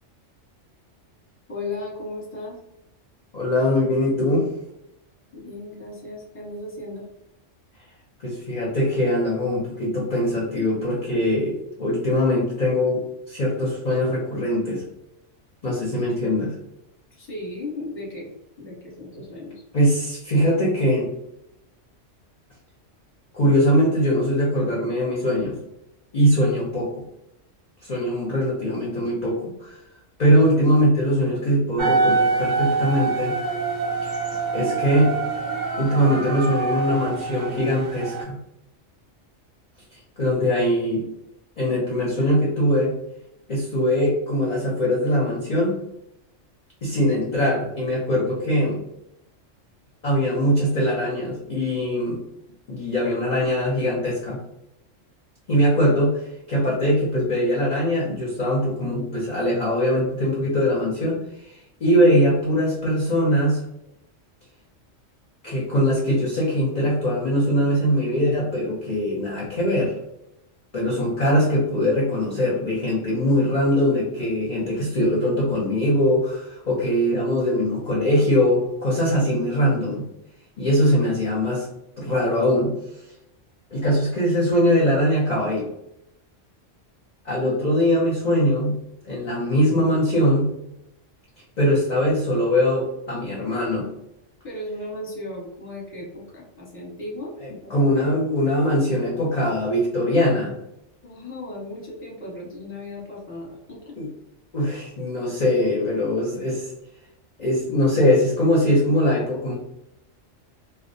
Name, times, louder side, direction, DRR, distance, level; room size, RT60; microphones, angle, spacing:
voice 1, 1.5-2.6 5.3-7.1 17.1-18.3 18.6-19.6 94.4-97.3 97.6-97.9 101.0-103.9, left 2 dB, 10° left, -5 dB, 0.8 m, -36 dB
voice 2, 3.3-4.5 8.2-13.0 13.3-14.8 15.6-16.6 19.7-21.1 23.3-25.6 26.1-27.0 27.8-29.8 30.2-33.4 34.0-34.1 34.5-35.1 35.8-38.4 39.9-41.0 41.6-42.9 43.5-45.8 46.8-48.8 50.0-52.2 52.7-54.4 55.5-63.6 65.4-70.0 70.7-80.0 80.6-81.7 82.0-82.8 83.7-85.6 87.2-88.8 89.0-90.5 91.6-93.9 97.4-100.5 104.0-104.1 104.5-106.7 107.4-109.5, equal, 45° left, -5 dB, 0.6 m, -21 dB
sound 1, 31.8-38.2, right 4 dB, 60° right, 0.5 m, -25 dB
2.3 x 2.1 x 2.6 m, 0.83 s
omnidirectional pair, 1.3 m